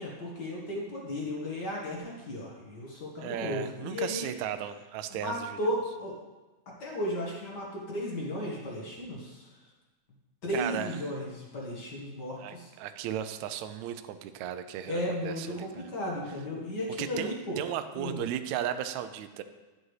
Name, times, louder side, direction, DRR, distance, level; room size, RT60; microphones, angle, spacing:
voice 1, 0.0-4.3 5.1-6.1 6.8-9.5 10.4-12.7 14.9-17.6 17.9-18.2, left 1 dB, 45° left, -3 dB, 1.4 m, -35 dB
voice 2, 3.2-5.8 10.5-11.0 12.4-15.9 17.0-19.4, right 10 dB, 85° right, 9 dB, 1.6 m, -35 dB
11.0 x 7.6 x 3.2 m, 1.2 s
omnidirectional pair, 3.8 m